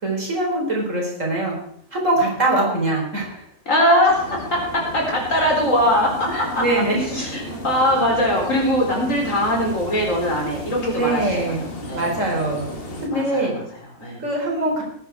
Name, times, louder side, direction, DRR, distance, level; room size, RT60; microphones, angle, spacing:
voice 1, 0.0-1.5 1.9-3.4 5.8-7.0 7.6-8.2 10.9-11.6 11.9-12.6 13.0-13.6 14.2-14.8, right 2 dB, 75° right, -2 dB, 4.6 m, -23 dB
voice 2, 3.7-6.6 7.1-11.5 11.9-12.1 13.1-13.6 14.0-14.2, equal, 80° left, -1 dB, 4.6 m, -21 dB
sound 1, 4.1-13.1, left 1 dB, 45° left, 2.0 m, -35 dB
19.0 x 9.4 x 4.7 m, 0.67 s
omnidirectional pair, 1.3 m